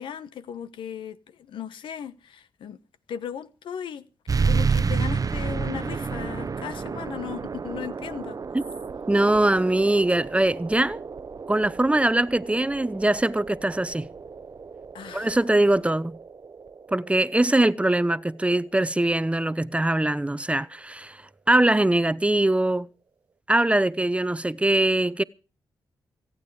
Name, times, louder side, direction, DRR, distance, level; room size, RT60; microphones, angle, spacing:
voice 1, 0.0-2.8 3.1-4.0 4.4-8.4 14.9-15.5, left 9 dB, 80° left, 1.0 m, -37 dB
sound 1, 4.3-19.4, right 5 dB, 45° right, 0.8 m, -31 dB
voice 2, 9.1-11.0 11.5-14.1 15.1-16.2 16.9-21.2 21.5-22.9 23.5-25.2, right 1 dB, 15° right, 0.8 m, -22 dB
24.5 x 9.0 x 4.8 m
supercardioid pair, 50°, 8 cm